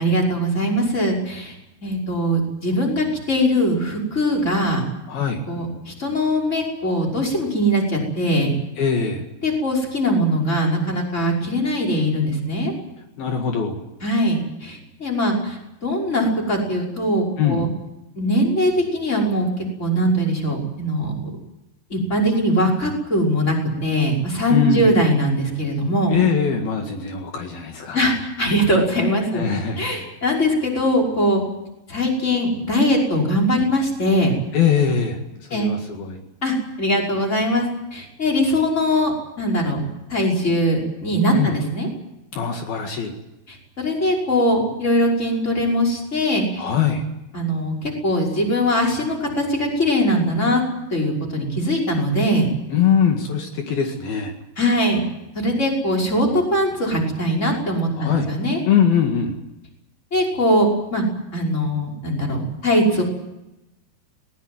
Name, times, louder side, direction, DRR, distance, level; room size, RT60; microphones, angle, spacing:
voice 1, 0.0-1.5 1.8-4.8 5.5-8.5 9.4-12.7 14.0-15.6 15.8-17.7 18.2-21.3 21.9-26.2 27.9-29.4 29.8-31.4 31.9-34.3 35.5-35.7 36.4-37.6 37.9-39.1 39.4-39.8 40.1-41.9 43.5-46.6 47.3-50.6 50.9-52.5 54.6-55.0 55.3-58.6 60.1-61.0 61.3-63.0, equal, 15° left, -1 dB, 5.7 m, -21 dB
voice 2, 5.1-5.4 8.8-9.3 13.2-13.8 17.4-17.7 24.5-25.0 26.1-28.1 29.3-29.9 34.5-36.2 41.3-41.6 42.3-43.1 46.6-47.1 52.7-54.3 57.9-58.3 58.6-59.4, left 7 dB, 70° left, 3 dB, 3.8 m, -22 dB
21.0 x 20.0 x 9.4 m, 0.92 s
omnidirectional pair, 4.6 m